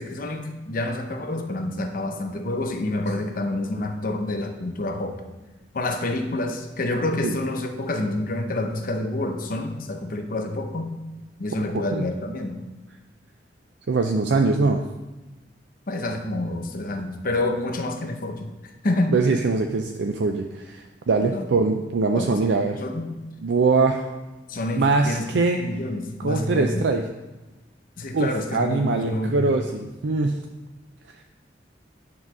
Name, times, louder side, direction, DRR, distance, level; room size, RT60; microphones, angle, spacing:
voice 1, 0.0-5.2 5.7-11.0 11.4-12.6 15.9-19.2 21.2-21.5 22.1-23.2 24.5-26.9 28.0-29.5, left 2 dB, 50° left, 5 dB, 0.8 m, -28 dB
voice 2, 13.9-14.8 19.1-22.8 23.4-24.1 24.7-25.6 26.2-27.0 28.1-30.4, right 3 dB, 70° right, 4 dB, 0.5 m, -22 dB
9.5 x 3.9 x 6.1 m, 1.1 s
head